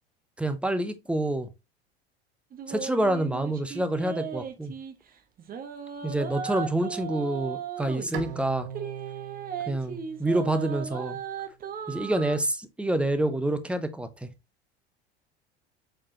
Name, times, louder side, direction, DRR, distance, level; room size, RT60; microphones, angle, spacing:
voice 1, 0.4-1.5 2.7-4.7 6.0-8.7 9.7-11.2 11.9-14.3, right 1 dB, 5° right, 0.9 m, -27 dB
sound 1, 2.5-4.9 5.4-8.1 8.7-12.4, right 7 dB, 30° right, 1.2 m, -36 dB
Bowed string instrument, 8.1-11.4, right 8 dB, 65° right, 0.9 m, -40 dB
7.3 x 4.5 x 2.9 m
figure-of-eight pair, 70°, 31 cm